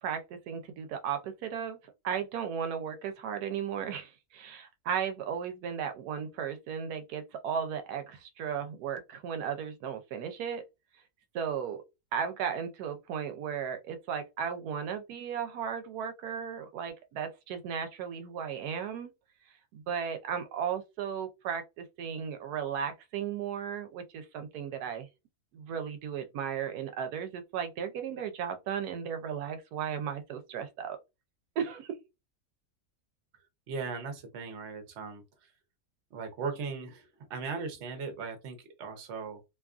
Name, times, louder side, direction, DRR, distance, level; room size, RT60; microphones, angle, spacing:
voice 1, 0.0-1.8 2.0-10.6 11.3-11.8 12.1-19.1 19.7-25.1 25.5-31.0 31.6-31.9, right 8 dB, 90° right, 1.1 m, -35 dB
voice 2, 33.7-35.2 36.1-39.4, right 5 dB, 55° right, 0.9 m, -38 dB
2.9 x 2.3 x 2.3 m
omnidirectional pair, 1.6 m